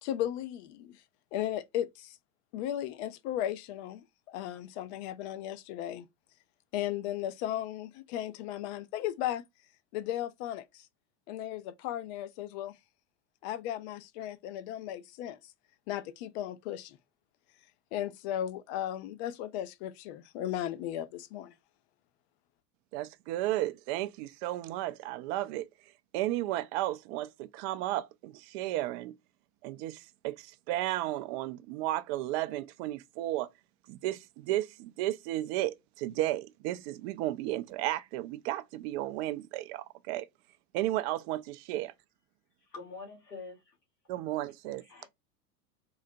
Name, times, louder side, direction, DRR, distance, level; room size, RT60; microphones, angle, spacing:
voice 1, 0.0-1.0 1.3-2.2 2.5-6.1 6.7-9.4 9.9-10.9 11.3-12.7 13.4-15.4 15.9-17.0 17.9-21.5, left 12 dB, 45° left, 0.5 m, -36 dB
voice 2, 22.9-29.2 29.6-33.5 33.9-40.3 40.7-41.9 44.1-44.8, right 15 dB, 45° right, 0.4 m, -34 dB
voice 3, 42.6-43.8 44.8-45.1, left 4 dB, 85° left, 1.6 m, -45 dB
3.9 x 2.1 x 2.6 m
hypercardioid pair, 90°, 47 cm